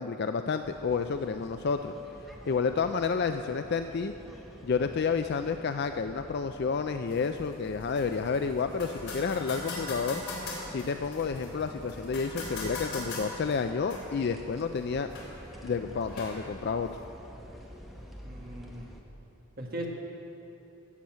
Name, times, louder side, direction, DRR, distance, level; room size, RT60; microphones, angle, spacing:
voice 1, 0.0-1.9 2.5-4.1 4.6-10.2 10.7-15.1 15.6-16.9, left 5 dB, 45° left, 8 dB, 0.3 m, -30 dB
sound 1, 0.6-19.0, equal, ahead, 1.0 m, -48 dB
sound 2, 7.1-17.1, left 2 dB, 70° left, 3.7 m, -42 dB
voice 2, 18.2-18.9 19.6-19.9, right 1 dB, 40° right, -1 dB, 1.8 m, -39 dB
15.5 x 7.1 x 7.4 m, 3.0 s
head